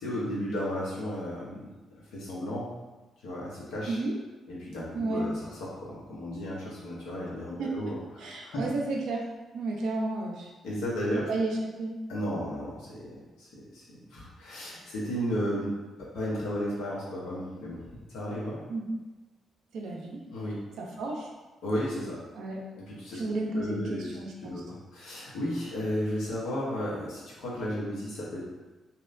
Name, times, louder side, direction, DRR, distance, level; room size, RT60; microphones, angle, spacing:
voice 1, 0.0-1.7 2.1-2.7 3.2-4.0 4.5-5.3 5.6-8.6 10.6-11.2 12.1-13.0 13.4-13.8 14.1-17.8 18.1-18.6 20.3-20.6 21.6-22.2 22.8-24.1 24.4-28.4, equal, 80° left, -6 dB, 0.8 m, -34 dB
voice 2, 4.9-5.2 7.6-9.3 9.5-10.5 11.1-11.9 18.7-19.0 19.7-20.2 20.8-21.3 22.3-22.6 23.1-24.6, right 2 dB, 75° right, -1 dB, 0.5 m, -32 dB
2.8 x 2.1 x 2.5 m, 1.2 s
supercardioid pair, 50°, 0 cm